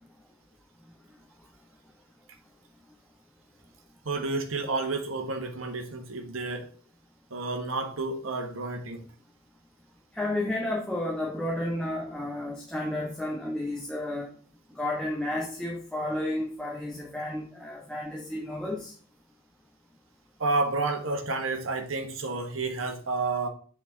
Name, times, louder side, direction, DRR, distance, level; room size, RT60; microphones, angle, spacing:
voice 1, 4.0-6.7 7.3-9.0 20.4-23.5, right 3 dB, 85° right, 5 dB, 1.2 m, -30 dB
voice 2, 10.1-14.3 14.7-18.9, left 1 dB, 5° left, -4 dB, 1.3 m, -32 dB
7.9 x 4.5 x 3.9 m, 0.44 s
head